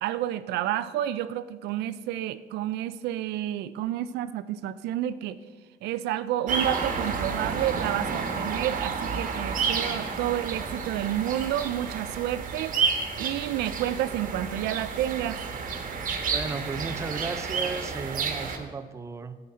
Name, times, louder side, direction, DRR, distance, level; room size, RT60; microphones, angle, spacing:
voice 1, 0.0-5.4 5.8-15.4, right 12 dB, 80° right, 13 dB, 0.4 m, -30 dB
sound 1, 6.5-18.6, right 5 dB, 50° right, 1.3 m, -30 dB
voice 2, 16.3-19.4, right 4 dB, 15° right, 10 dB, 0.4 m, -35 dB
9.1 x 7.9 x 4.3 m, 1.4 s
cardioid pair, 110°, 17 cm